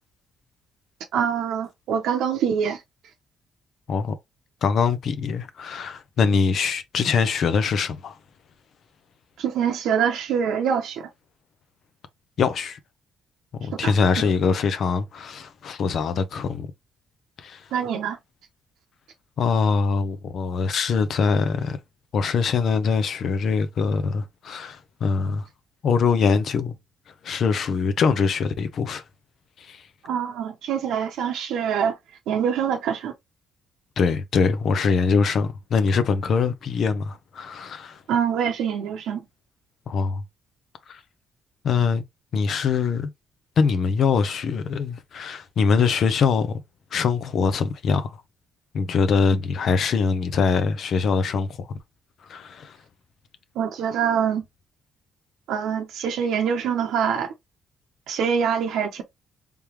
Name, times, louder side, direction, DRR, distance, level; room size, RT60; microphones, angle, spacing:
voice 1, 1.1-2.8 9.4-11.1 13.8-13.9 17.7-18.2 30.0-32.0 32.3-33.1 38.1-39.2 53.6-54.4 55.5-57.3 58.1-59.0, right 7 dB, 85° right, 0.7 m, -24 dB
voice 2, 4.6-8.2 12.4-12.8 13.6-16.7 17.4-17.6 19.4-21.8 22.1-25.5 25.8-26.7 27.2-29.0 29.6-29.8 34.0-38.0 39.9-40.2 40.9-41.0 41.6-42.0 42.3-43.1 43.6-46.6 46.9-48.2 48.7-51.7 52.3-52.8, left 5 dB, 65° left, 0.6 m, -23 dB
3.5 x 3.3 x 2.9 m
cardioid pair, 90°, 0 cm